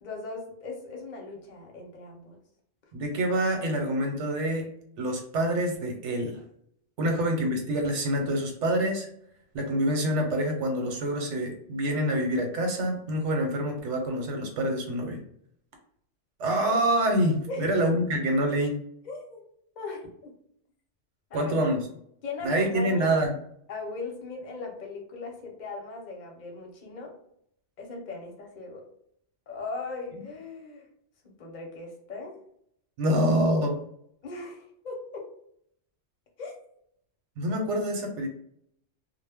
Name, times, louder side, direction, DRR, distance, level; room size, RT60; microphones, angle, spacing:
voice 1, 0.0-2.4 7.0-7.1 17.5-17.7 19.0-19.4 19.8-20.3 21.3-21.5 22.2-23.2 23.7-27.1 27.8-28.8 29.5-30.9 31.2-32.4 34.2-35.2 36.4-36.5, left 3 dB, 45° left, 0 dB, 0.7 m, -38 dB
voice 2, 2.9-4.7 5.0-6.4 7.0-9.1 9.5-15.2 16.4-18.8 21.3-21.8 22.4-23.3 33.0-33.8 37.4-38.3, right 1 dB, 90° right, 2 dB, 1.0 m, -26 dB
2.1 x 2.0 x 3.4 m, 0.68 s
omnidirectional pair, 1.2 m